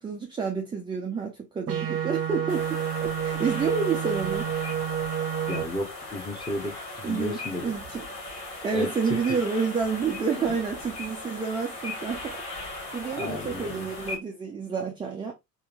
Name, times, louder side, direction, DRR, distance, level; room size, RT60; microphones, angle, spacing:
voice 1, 0.0-4.6 7.0-8.1 8.6-12.4 12.9-15.3, right 5 dB, 10° right, 0.4 m, -29 dB
sound 1, 1.7-5.6, right 9 dB, 30° right, 0.8 m, -29 dB
sound 2, 2.5-14.2, left 2 dB, 75° left, 1.3 m, -38 dB
voice 2, 5.5-7.6 8.7-9.4 13.1-13.9, left 1 dB, 10° left, 0.9 m, -33 dB
3.6 x 2.2 x 3.1 m
figure-of-eight pair, 65°, 48 cm